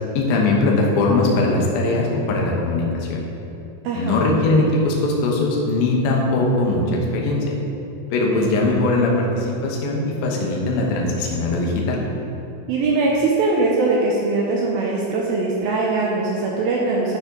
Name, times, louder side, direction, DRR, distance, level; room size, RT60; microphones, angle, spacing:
voice 1, 0.2-3.2 3.9-7.6 8.1-12.0, left 2 dB, 70° left, -1 dB, 2.6 m, -20 dB
voice 2, 3.8-4.3 8.3-8.6 12.7-17.2, right 3 dB, 85° right, -2 dB, 2.1 m, -21 dB
12.0 x 4.3 x 5.2 m, 2.9 s
omnidirectional pair, 5.1 m